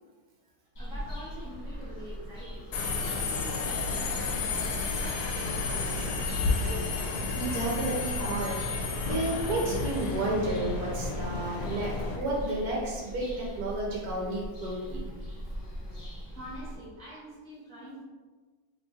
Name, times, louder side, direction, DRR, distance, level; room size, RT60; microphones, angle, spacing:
Bird vocalization bird call bird song, 0.7-16.7, equal, 45° left, 0.3 m, -40 dB
voice 1, 0.8-2.7 3.0-6.2 6.6-6.8 16.3-18.0, right 1 dB, 40° right, -9 dB, 1.0 m, -45 dB
Subway metro underground, 2.7-12.2, left 4 dB, 80° left, 1.1 m, -32 dB
voice 2, 7.4-8.6 9.1-15.1, right 2 dB, 80° right, -3 dB, 1.1 m, -31 dB
3.0 x 2.4 x 3.8 m, 1.4 s
omnidirectional pair, 1.7 m